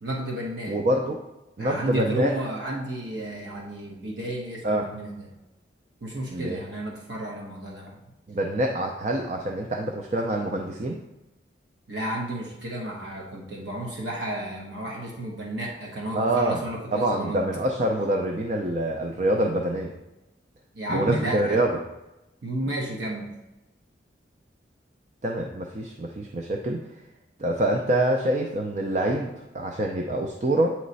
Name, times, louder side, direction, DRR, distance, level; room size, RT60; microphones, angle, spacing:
voice 1, 0.0-0.8 1.6-5.3 6.0-8.0 11.9-17.4 20.7-21.6 22.4-23.3, right 1 dB, 80° right, -2 dB, 1.1 m, -32 dB
voice 2, 0.7-1.2 1.6-2.3 4.6-4.9 6.3-6.6 8.3-11.0 16.1-16.6 16.9-19.9 20.9-21.8 25.2-26.8 27.4-29.3 29.5-30.7, right 1 dB, 40° right, 2 dB, 0.4 m, -25 dB
8.6 x 3.1 x 4.0 m, 0.97 s
head